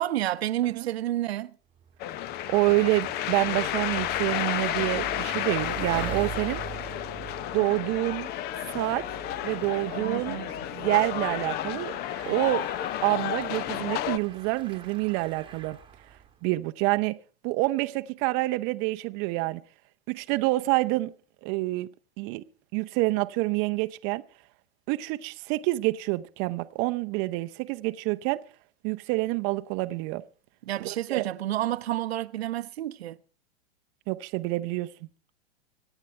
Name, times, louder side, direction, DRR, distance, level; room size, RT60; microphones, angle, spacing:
voice 1, 0.0-1.5 9.9-10.5 30.7-33.2, right 13 dB, 70° right, 0.8 m, -30 dB
Bicycle, 1.7-16.4, right 9 dB, 15° right, 1.3 m, -44 dB
sound 1, 2.0-14.2, left 12 dB, 30° left, 0.6 m, -32 dB
voice 2, 2.5-6.6 7.5-8.3 8.7-9.1 9.4-10.4 10.7-12.0 12.3-12.7 13.0-15.8 16.4-19.6 20.1-21.1 21.4-21.9 22.2-22.4 22.7-24.2 24.9-28.4 28.8-30.2 30.8-31.3 34.1-34.9, right 21 dB, 35° right, 0.7 m, -27 dB
25.0 x 9.1 x 4.4 m
hypercardioid pair, 115°, 33 cm